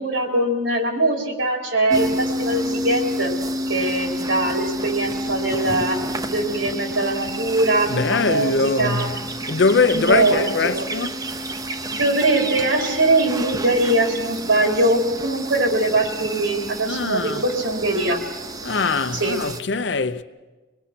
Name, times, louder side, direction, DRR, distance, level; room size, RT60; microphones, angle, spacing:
voice 1, 0.0-3.3 3.7-6.0 6.3-9.1 9.9-10.5 10.7-10.9 11.9-18.2 19.1-19.4, right 2 dB, 85° right, 3.8 m, -21 dB
sound 1, 1.9-19.6, right 1 dB, 20° right, 0.6 m, -29 dB
voice 2, 7.9-9.2 9.5-11.1 16.9-17.4 18.6-20.2, left 4 dB, 60° left, 0.7 m, -22 dB
24.5 x 20.0 x 5.9 m
head